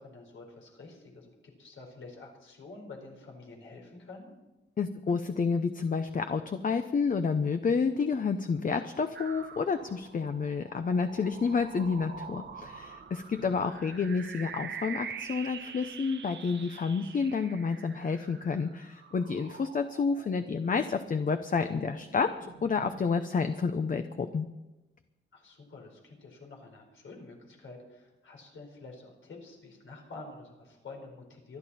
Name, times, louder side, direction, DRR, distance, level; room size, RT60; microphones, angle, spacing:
voice 1, 0.0-4.3 13.4-13.6 25.3-31.6, left 3 dB, 85° left, 1 dB, 4.5 m, -48 dB
voice 2, 4.8-22.3 22.6-24.5, left 5 dB, 45° left, 8 dB, 0.8 m, -29 dB
sound 1, 9.1-21.0 21.4-23.1, right 6 dB, 65° right, 1.2 m, -45 dB
25.5 x 11.0 x 4.3 m, 1.0 s
wide cardioid pair, 145°, 20 cm